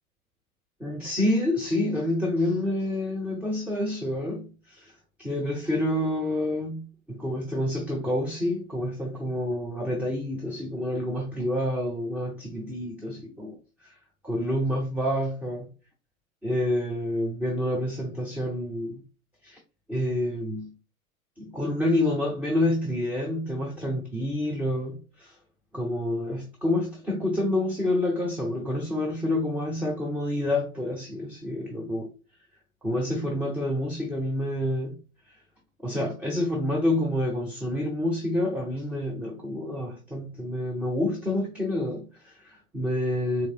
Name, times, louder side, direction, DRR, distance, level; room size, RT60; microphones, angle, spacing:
voice 1, 0.8-4.9 5.2-13.9 14.2-15.7 16.4-19.0 19.4-19.6 19.9-20.7 21.4-25.4 25.7-32.1 32.8-35.0 35.8-43.5, left 1 dB, 5° right, 0.7 m, -28 dB
4.5 x 2.8 x 2.3 m
figure-of-eight pair, 100°, 43 cm